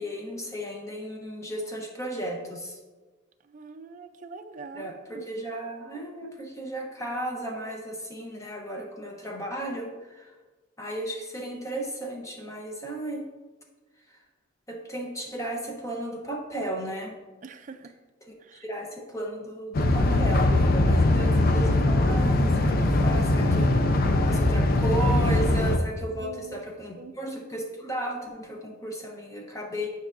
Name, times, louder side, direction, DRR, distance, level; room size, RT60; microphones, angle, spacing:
voice 1, 0.0-2.8 4.7-10.3 10.8-13.2 14.7-17.2 18.6-29.9, right 1 dB, 15° left, 0 dB, 0.8 m, -34 dB
voice 2, 3.5-5.3 17.4-17.9 18.5-18.6 26.2-26.6 27.0-27.1, right 4 dB, 40° right, 7 dB, 0.4 m, -43 dB
sound 1, 19.7-25.8, left 2 dB, 50° left, 0.5 m, -21 dB
9.8 x 5.4 x 2.5 m, 1.3 s
head